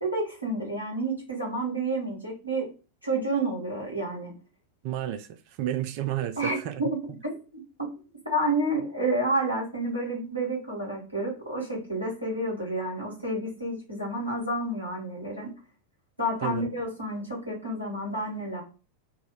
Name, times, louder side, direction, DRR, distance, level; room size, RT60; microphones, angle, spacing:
voice 1, 0.0-2.7 3.0-4.3 6.4-6.9 7.2-7.6 8.2-15.5 16.2-18.6, right 1 dB, 90° left, 1.4 m, -30 dB
voice 2, 4.8-6.8 16.4-16.7, right 11 dB, 45° right, 0.4 m, -31 dB
2.7 x 2.0 x 3.9 m
figure-of-eight pair, 90°, 0 cm